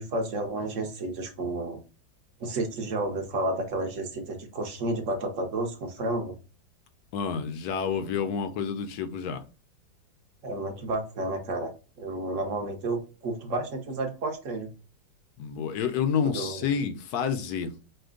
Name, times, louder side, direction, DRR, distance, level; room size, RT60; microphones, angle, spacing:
voice 1, 0.0-1.8 2.4-6.3 10.4-11.7 12.0-14.7 16.3-16.7, right 2 dB, 50° right, 4 dB, 1.1 m, -31 dB
voice 2, 7.1-9.4 15.4-17.7, left 7 dB, 70° left, 8 dB, 1.0 m, -29 dB
5.0 x 2.2 x 3.7 m, 0.33 s
omnidirectional pair, 2.0 m